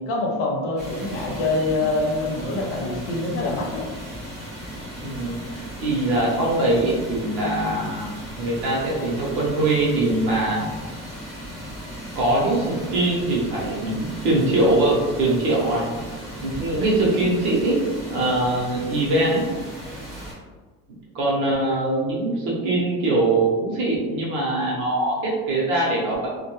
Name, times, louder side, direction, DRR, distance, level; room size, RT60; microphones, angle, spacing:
voice 1, 0.0-3.8, left 2 dB, 50° left, -1 dB, 0.6 m, -25 dB
sound 1, 0.8-20.3, equal, ahead, 0.8 m, -37 dB
voice 2, 5.0-8.1 8.4-10.7 12.2-15.9 16.4-17.8 18.1-19.5 21.1-26.3, right 2 dB, 40° right, -5 dB, 0.8 m, -22 dB
2.2 x 2.1 x 2.9 m, 1.3 s
cardioid pair, 175°, 30 cm